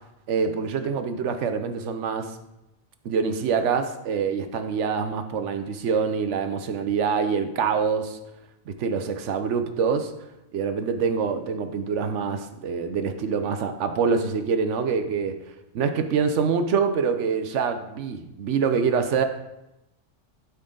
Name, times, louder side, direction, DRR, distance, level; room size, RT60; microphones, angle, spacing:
voice 1, 0.3-2.3 3.0-8.2 8.7-10.1 10.5-15.3 15.7-19.2, right 6 dB, 75° right, 8 dB, 1.0 m, -25 dB
12.0 x 4.3 x 3.8 m, 0.92 s
omnidirectional pair, 1.2 m